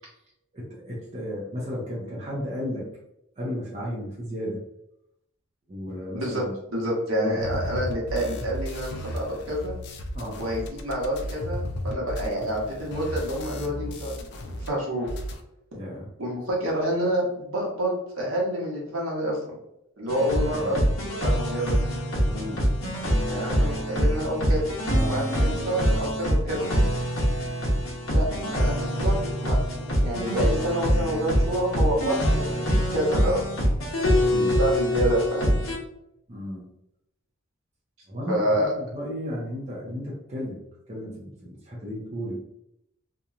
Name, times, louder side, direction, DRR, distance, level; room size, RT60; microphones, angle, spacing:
voice 1, 0.5-2.9 3.4-4.6 5.7-6.5 7.2-7.4 10.1-10.4 15.7-16.1 20.4-20.8 22.3-22.6 24.9-25.2 28.3-28.5 28.8-29.0 34.2-34.6 36.3-36.7 38.1-40.6 40.9-42.4, equal, 30° right, -6 dB, 0.6 m, -34 dB
voice 2, 6.1-6.4 6.7-9.7 10.4-14.3 14.6-15.1 16.2-19.5 20.0-21.8 23.3-24.7 25.0-26.7 28.1-29.6 29.8-33.4 34.1-35.5 38.3-38.7, equal, 70° right, -3 dB, 0.9 m, -28 dB
sound 1, 7.4-14.7 14.9-15.4, equal, 55° left, 0.3 m, -34 dB
sound 2, 20.1-35.8, equal, 75° left, 0.9 m, -24 dB
2.8 x 2.2 x 2.4 m, 0.82 s
head